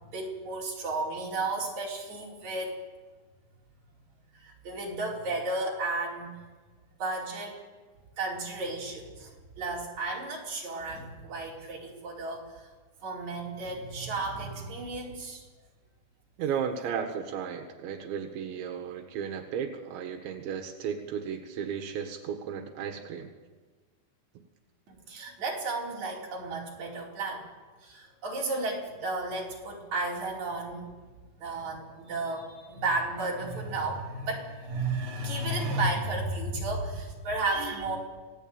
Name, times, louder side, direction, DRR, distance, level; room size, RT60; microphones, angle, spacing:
voice 1, 0.1-2.8 4.3-6.3 7.0-7.6 8.2-12.7 13.0-15.5 24.9-27.5 27.8-30.9 31.4-38.0, right 2 dB, 40° right, -3 dB, 5.8 m, -33 dB
voice 2, 16.4-23.3, right 7 dB, 85° right, 4 dB, 3.8 m, -34 dB
27.5 x 18.0 x 8.9 m, 1.4 s
omnidirectional pair, 5.1 m